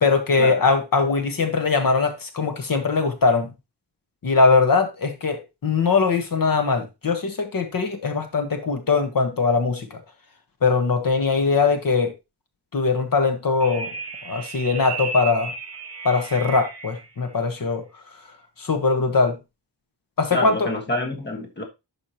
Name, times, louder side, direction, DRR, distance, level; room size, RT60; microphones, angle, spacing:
voice 1, 0.0-3.5 4.2-10.0 10.6-12.1 12.7-13.9 14.2-15.5 16.0-17.8 18.6-19.4 20.2-20.7, left 4 dB, 50° left, 1.3 m, -21 dB
sound 1, 13.6-17.1, right 4 dB, 35° right, 1.3 m, -34 dB
voice 2, 20.3-21.6, left 1 dB, 25° left, 1.5 m, -27 dB
11.5 x 4.9 x 2.9 m
wide cardioid pair, 165°, 43 cm